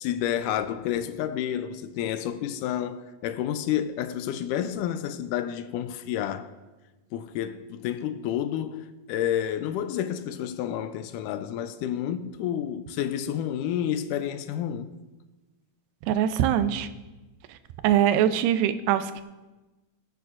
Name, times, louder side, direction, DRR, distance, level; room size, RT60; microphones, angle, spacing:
voice 1, 0.0-6.5 7.1-14.9, left 10 dB, 80° left, 2.0 m, -30 dB
voice 2, 16.1-16.9 17.8-19.2, right 10 dB, 85° right, 2.3 m, -22 dB
19.5 x 9.2 x 2.5 m
omnidirectional pair, 3.9 m